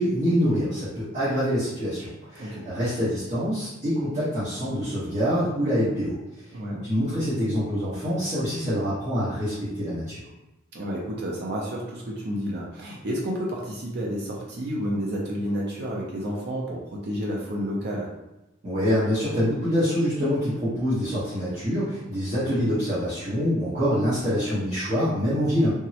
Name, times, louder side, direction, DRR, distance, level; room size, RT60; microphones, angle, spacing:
voice 1, 0.0-6.2 6.8-10.2 18.6-25.7, equal, 35° right, -12 dB, 1.0 m, -25 dB
voice 2, 6.5-6.9 10.7-18.1, equal, 50° right, -3 dB, 0.5 m, -30 dB
3.4 x 2.0 x 2.8 m, 0.99 s
head